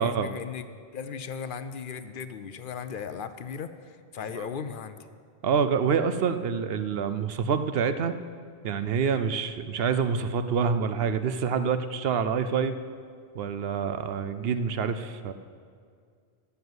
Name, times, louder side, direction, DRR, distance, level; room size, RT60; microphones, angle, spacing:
voice 1, 0.0-5.0, left 6 dB, 60° left, 11 dB, 0.7 m, -37 dB
voice 2, 5.4-8.2 8.6-12.8 13.3-15.3, right 6 dB, 70° right, 11 dB, 0.8 m, -27 dB
12.5 x 7.2 x 7.9 m, 2.2 s
omnidirectional pair, 1.1 m